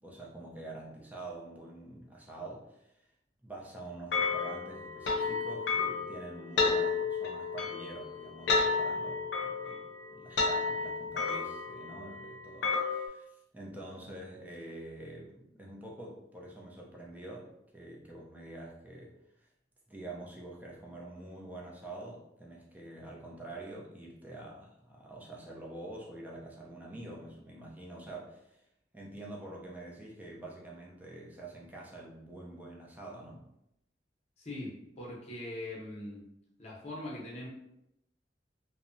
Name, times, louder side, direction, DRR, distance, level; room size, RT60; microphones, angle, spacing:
voice 1, 0.0-3.1 3.4-9.8 10.1-19.1 19.4-19.5 19.9-28.6 28.9-33.5, right 2 dB, 10° right, -3 dB, 0.4 m, -46 dB
sound 1, 4.1-13.1, left 4 dB, 85° left, 0.5 m, -32 dB
voice 2, 34.4-36.2 36.6-37.5, left 1 dB, 40° left, -4 dB, 0.7 m, -41 dB
2.7 x 2.1 x 2.5 m, 0.81 s
head